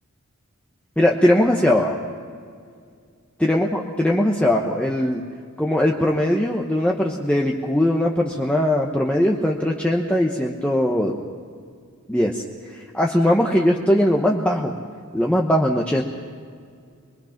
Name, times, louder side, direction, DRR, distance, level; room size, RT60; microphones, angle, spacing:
voice 1, 1.0-2.0 3.4-5.2 5.6-11.2 12.1-14.7 15.1-16.0, left 1 dB, 5° left, -1 dB, 1.0 m, -20 dB
24.0 x 21.5 x 5.9 m, 2.2 s
head